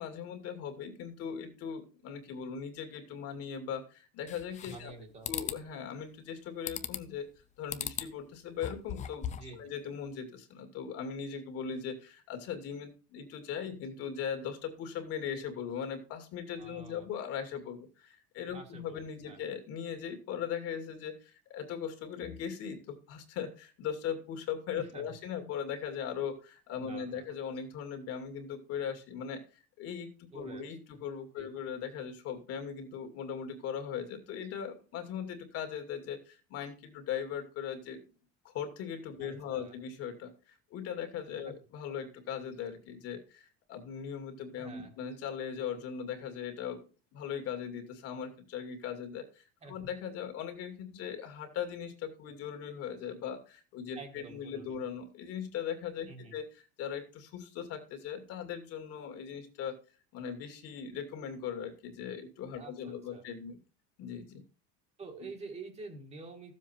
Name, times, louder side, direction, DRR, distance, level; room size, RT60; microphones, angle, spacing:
voice 1, 0.0-7.3 7.6-38.0 38.4-46.8 47.1-59.7 60.1-63.6 64.0-64.4 65.2-65.3, left 7 dB, 45° left, 6 dB, 2.3 m, -39 dB
sound 1, 4.3-4.9 5.2-5.6 6.7-7.2 7.7-8.1 8.5-9.5, left 9 dB, 20° left, 0.6 m, -38 dB
voice 2, 4.6-5.3 9.3-9.6 16.6-17.0 18.5-19.4 24.8-25.0 26.8-27.3 30.3-30.6 30.9-31.0 31.4-31.5 39.2-39.7 41.4-41.5 44.6-44.9 49.6-49.7 53.9-54.8 56.1-56.4 62.5-63.2 65.0-66.6, right 3 dB, 20° right, 3 dB, 1.7 m, -48 dB
14.5 x 7.5 x 4.4 m, 0.36 s
cardioid pair, 170°, 32 cm